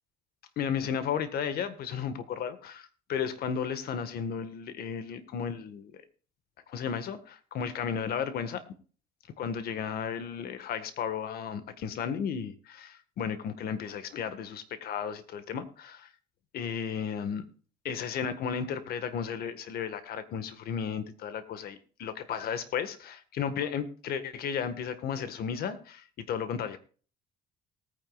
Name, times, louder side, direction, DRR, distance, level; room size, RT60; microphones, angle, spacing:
voice 1, 0.6-6.0 6.7-8.6 9.4-16.1 16.5-17.5 17.8-26.8, left 7 dB, 65° left, 11 dB, 1.6 m, -34 dB
19.0 x 9.5 x 2.4 m, 0.40 s
cardioid pair, 110°, 17 cm